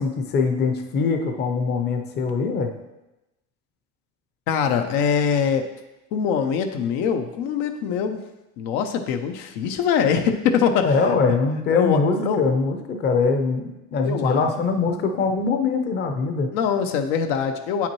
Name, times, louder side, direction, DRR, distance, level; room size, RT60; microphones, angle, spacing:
voice 1, 0.0-2.7 10.8-16.5, left 4 dB, 30° left, 5 dB, 0.7 m, -22 dB
voice 2, 4.5-5.7 6.1-8.2 8.6-11.0 11.7-12.4 14.0-14.5 16.5-17.9, left 7 dB, 75° left, 6 dB, 0.7 m, -23 dB
8.3 x 5.8 x 3.0 m, 0.98 s
cardioid pair, 140°, 33 cm